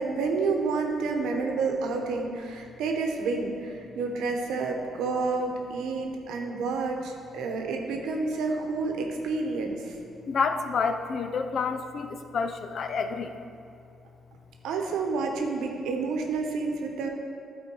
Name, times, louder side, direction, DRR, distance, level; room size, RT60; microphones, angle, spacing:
voice 1, 0.0-9.9 14.6-17.1, right 4 dB, 85° right, 3 dB, 0.9 m, -29 dB
voice 2, 10.3-13.3, left 5 dB, 60° left, 8 dB, 0.5 m, -29 dB
11.5 x 4.3 x 4.6 m, 2.5 s
cardioid pair, 90°, 0 cm